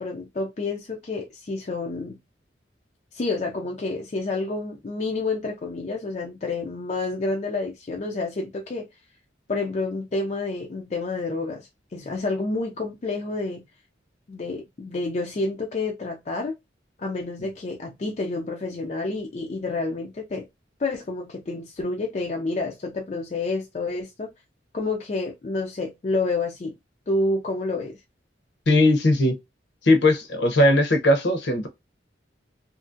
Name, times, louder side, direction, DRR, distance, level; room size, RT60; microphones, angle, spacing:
voice 1, 0.0-2.2 3.1-8.9 9.5-13.6 14.3-16.5 17.0-20.5 20.8-24.3 24.7-26.8 27.1-28.0, left 3 dB, 35° left, 0.4 m, -29 dB
voice 2, 28.7-29.4 29.8-31.7, left 1 dB, 65° left, 0.7 m, -19 dB
2.8 x 2.5 x 2.5 m
head